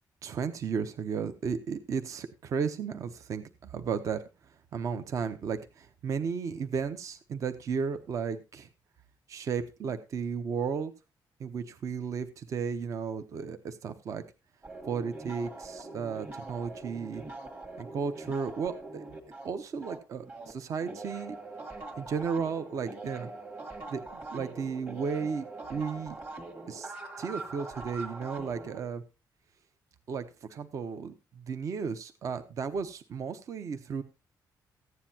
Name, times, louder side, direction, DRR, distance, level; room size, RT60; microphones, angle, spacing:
voice 1, 0.2-4.2 4.7-8.7 9.3-10.9 11.4-14.2 14.8-17.2 17.8-19.0 19.4-21.4 22.0-23.3 23.9-26.2 26.7-26.9 27.2-29.0 30.1-30.2 30.5-34.0, right 6 dB, 45° right, 10 dB, 0.9 m, -34 dB
sound 1, 14.6-20.5 20.8-28.8, right 2 dB, 25° right, 1.8 m, -43 dB
15.0 x 9.7 x 2.8 m, 0.27 s
cardioid pair, 175°, 7 cm